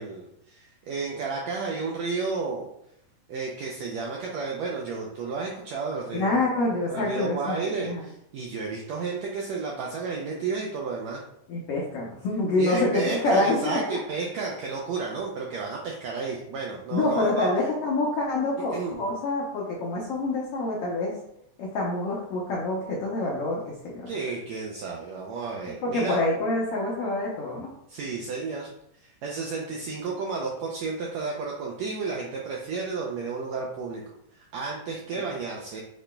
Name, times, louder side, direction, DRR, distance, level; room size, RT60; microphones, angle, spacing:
voice 1, 0.0-2.7 3.3-6.4 6.6-11.2 12.6-17.5 18.7-19.0 24.1-26.2 27.9-28.7 29.0-34.0 34.3-35.8, right 4 dB, 85° right, -2 dB, 1.5 m, -32 dB
voice 2, 6.1-8.0 11.5-14.0 16.9-21.1 21.6-24.1 25.7-27.7 35.1-35.2, left 2 dB, 85° left, -3 dB, 1.3 m, -27 dB
7.2 x 3.2 x 2.2 m, 0.77 s
omnidirectional pair, 3.7 m